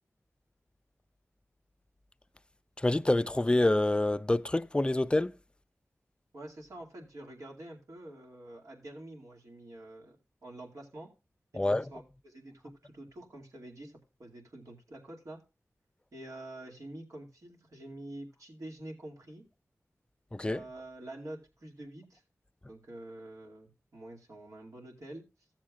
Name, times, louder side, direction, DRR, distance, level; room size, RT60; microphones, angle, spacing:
voice 1, 2.8-5.3 11.5-11.9 20.3-20.6, left 1 dB, 20° left, 0.4 m, -27 dB
voice 2, 6.3-10.2 10.4-11.1 11.5-15.4 16.1-19.4 20.5-22.2 22.7-25.3, right 1 dB, 80° right, 2.4 m, -47 dB
15.5 x 7.3 x 2.4 m
wide cardioid pair, 85°, 6 cm